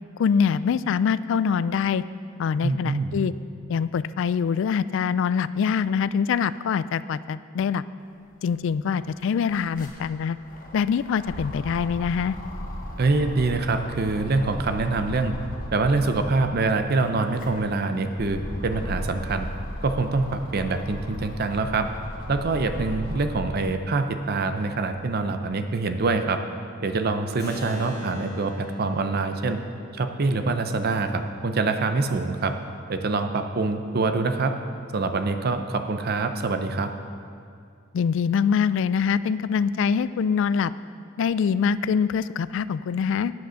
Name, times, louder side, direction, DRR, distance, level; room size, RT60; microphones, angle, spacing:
voice 1, 0.2-2.0 2.4-3.3 3.7-7.8 8.4-10.4 10.7-12.4 37.9-40.7 41.2-43.3, left 6 dB, 65° left, 16 dB, 0.3 m, -24 dB
voice 2, 2.6-3.2 13.0-15.3 15.7-19.5 19.8-21.9 22.3-26.4 26.8-29.6 29.9-32.5 32.9-34.6 34.9-36.9, right 3 dB, 50° right, 8 dB, 0.6 m, -25 dB
sound 1, 8.5-8.6 8.8-16.6 17.1-23.6 24.1-25.3, equal, 45° left, 1.1 m, -36 dB
Keyboard (musical), 27.4-33.2, left 2 dB, 15° left, 2.6 m, -43 dB
9.3 x 7.7 x 6.3 m, 2.3 s
head